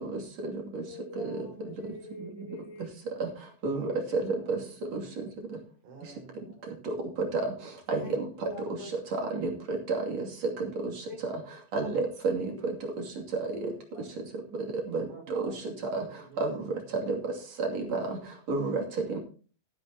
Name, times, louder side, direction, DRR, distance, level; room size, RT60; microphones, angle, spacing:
voice 1, 0.8-2.9 8.0-8.1 8.4-8.9 11.1-11.2 13.5-13.8, left 1 dB, 15° left, -1 dB, 0.6 m, -44 dB
voice 2, 4.4-5.2 5.8-6.6 15.0-16.1 16.3-16.4 17.0-17.1 19.0-19.2, right 4 dB, 75° right, -2 dB, 6.6 m, -49 dB
voice 3, 7.9-8.2 9.3-10.2 10.8-10.9 11.2-11.3 11.7-12.5 14.9-15.0 15.4-16.0 16.4-16.6 16.9-17.1 17.6-18.0 18.5-18.8 19.1-19.2, right 3 dB, 40° right, 1 dB, 3.0 m, -30 dB
14.5 x 12.5 x 2.9 m, 0.38 s
omnidirectional pair, 5.8 m